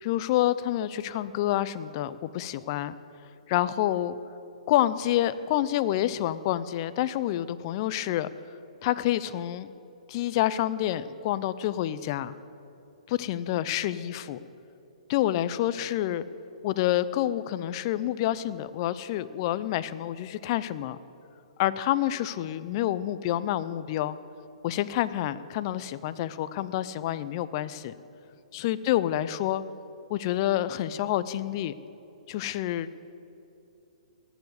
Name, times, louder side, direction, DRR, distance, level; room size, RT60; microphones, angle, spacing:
voice 1, 0.0-2.9 3.5-4.2 4.7-8.3 8.8-9.7 10.1-12.3 13.1-14.4 15.1-16.2 16.6-21.0 21.6-24.2 24.6-27.9 28.5-29.6 30.1-31.7 32.3-32.9, left 13 dB, 40° left, 15 dB, 0.5 m, -28 dB
18.0 x 7.1 x 8.1 m, 2.8 s
hypercardioid pair, 140°, 4 cm